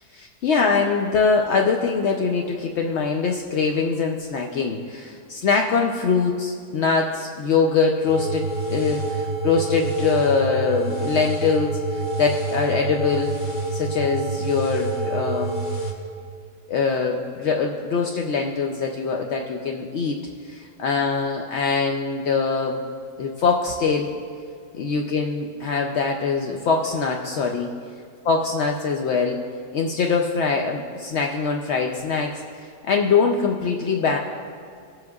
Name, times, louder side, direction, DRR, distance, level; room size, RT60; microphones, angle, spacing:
voice 1, 0.2-13.3 13.7-15.6 16.7-20.2 20.5-22.8 23.2-24.1 24.7-27.7 28.3-29.4 29.7-34.2, left 5 dB, 70° left, 1 dB, 0.6 m, -23 dB
sound 1, 8.0-15.9, right 3 dB, 30° left, 1.3 m, -27 dB
18.0 x 7.7 x 2.4 m, 2.2 s
omnidirectional pair, 1.8 m